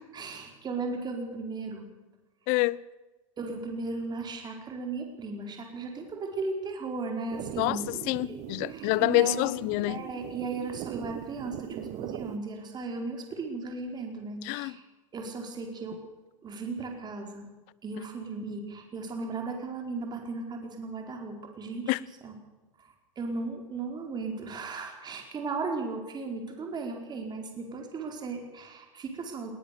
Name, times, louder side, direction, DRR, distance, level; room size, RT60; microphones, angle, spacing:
voice 1, 0.1-1.9 3.4-7.9 8.2-8.4 8.7-9.5 9.9-14.8 15.1-16.0 16.4-17.5 17.8-21.9 22.2-22.3 22.8-29.5, right 3 dB, 25° right, 4.5 m, -36 dB
voice 2, 2.5-2.8 7.6-10.0 14.4-14.7 21.9-22.0, left 21 dB, 50° left, 0.8 m, -27 dB
sound 1, 7.3-12.4, right 16 dB, 45° right, 0.8 m, -40 dB
20.0 x 20.0 x 6.9 m
hypercardioid pair, 120°, 17 cm